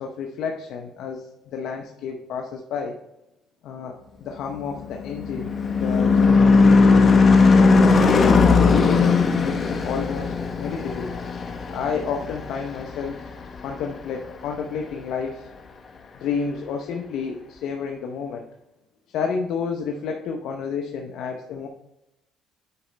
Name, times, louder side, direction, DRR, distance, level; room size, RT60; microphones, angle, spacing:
voice 1, 0.0-3.0 3.6-7.1 7.8-11.1 11.7-13.3 13.6-15.5 16.2-18.5 19.1-21.7, left 6 dB, 75° left, 2 dB, 0.8 m, -30 dB
Car passing by / Truck / Engine, 4.6-13.3, left 4 dB, 40° left, 1.0 m, -18 dB
9.6 x 5.1 x 3.3 m, 0.90 s
cardioid pair, 90°, 0 cm